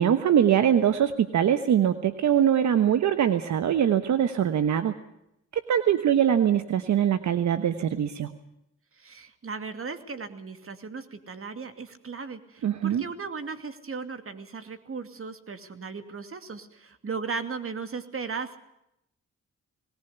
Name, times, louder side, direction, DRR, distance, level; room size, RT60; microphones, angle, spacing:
voice 1, 0.0-4.9 5.7-8.3 12.6-13.0, right 9 dB, 75° right, 10 dB, 1.2 m, -22 dB
voice 2, 9.0-18.6, right 5 dB, 50° right, 8 dB, 2.5 m, -36 dB
19.5 x 19.0 x 8.1 m, 0.81 s
supercardioid pair, 55°, 29 cm